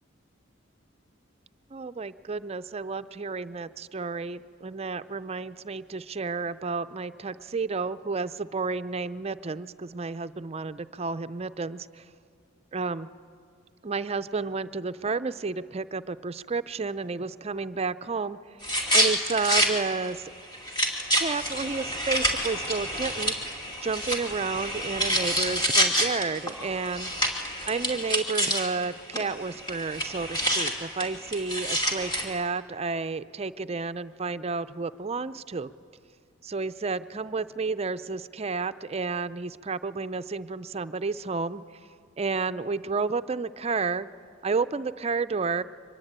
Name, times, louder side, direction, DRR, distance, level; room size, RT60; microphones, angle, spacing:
voice 1, 1.7-12.0 12.7-13.1 13.8-18.4 18.9-20.3 21.1-23.3 23.8-27.1 27.7-35.7 36.4-41.6 42.2-44.1 44.4-45.6, right 4 dB, 30° right, 12 dB, 0.5 m, -31 dB
sound 1, 18.6-19.7 20.1-20.2 20.5-28.8 29.1-29.2 29.5-32.3, equal, 20° left, 2.6 m, -27 dB
24.0 x 20.5 x 8.9 m, 2.3 s
head